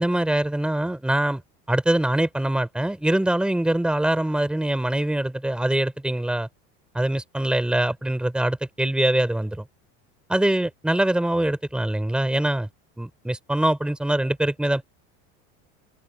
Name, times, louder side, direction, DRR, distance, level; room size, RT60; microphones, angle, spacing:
voice 1, 0.0-1.4 1.7-6.5 6.9-9.6 10.3-12.7 13.0-14.8, right 1 dB, 5° right, 3.5 m, -23 dB
open air
cardioid pair, 160°, 30 cm